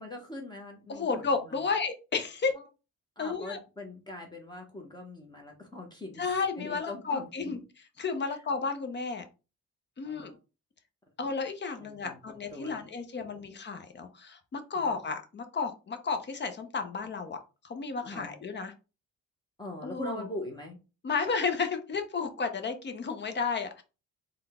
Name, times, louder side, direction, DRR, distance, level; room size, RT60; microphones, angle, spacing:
voice 1, 0.0-1.3 3.2-6.2 6.6-7.5 10.0-10.4 11.8-12.2 12.5-12.9 13.2-13.3 14.7-15.0 18.0-18.3 19.6-20.8, left 1 dB, 15° left, 0 dB, 1.0 m, -42 dB
voice 2, 0.9-2.5 3.2-3.6 6.2-9.2 10.0-10.4 11.2-17.4 17.6-18.7 19.8-20.3 21.0-23.8, left 5 dB, 35° left, 7 dB, 0.8 m, -32 dB
3.7 x 2.3 x 3.6 m, 0.31 s
cardioid pair, 90°, 30 cm